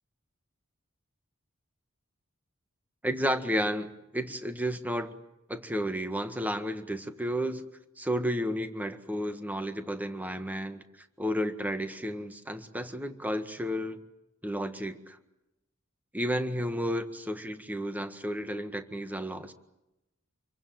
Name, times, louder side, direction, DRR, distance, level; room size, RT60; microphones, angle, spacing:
voice 1, 3.0-5.1 5.5-7.7 8.0-10.8 11.2-14.0 14.4-15.2 16.1-19.5, equal, 10° right, 8 dB, 1.7 m, -32 dB
27.5 x 24.0 x 7.7 m, 0.90 s
head